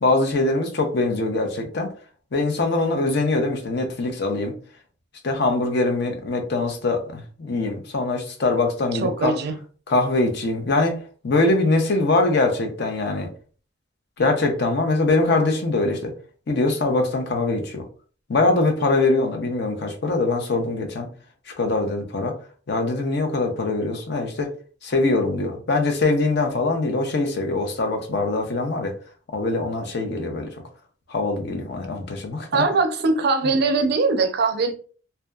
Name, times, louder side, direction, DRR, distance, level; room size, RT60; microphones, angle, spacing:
voice 1, 0.0-1.9 2.3-4.5 5.2-9.3 9.9-11.0 11.2-13.3 14.2-16.1 16.5-17.8 18.3-21.1 21.6-22.3 22.7-24.5 24.8-28.9 29.3-30.5 31.1-32.6, left 2 dB, 60° left, 0.6 m, -22 dB
voice 2, 9.0-9.6 32.5-34.7, right 3 dB, 60° right, 0.4 m, -21 dB
2.7 x 2.2 x 2.2 m
head